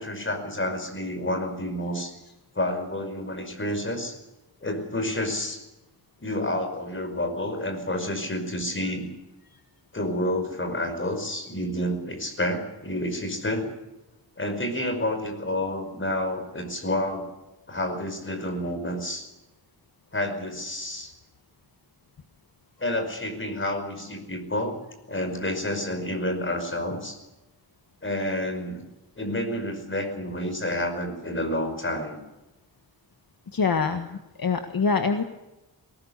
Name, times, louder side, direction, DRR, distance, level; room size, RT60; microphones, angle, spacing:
voice 1, 0.0-2.1 2.6-4.2 4.6-5.6 6.2-9.1 9.9-13.7 14.4-17.3 17.7-19.3 20.1-21.1 22.8-24.8 25.1-27.2 28.0-28.8 29.2-32.2, left 1 dB, 30° left, 6 dB, 5.3 m, -29 dB
voice 2, 33.5-35.2, left 5 dB, 60° left, 6 dB, 1.7 m, -25 dB
21.0 x 19.0 x 8.1 m, 0.99 s
wide cardioid pair, 125°, 39 cm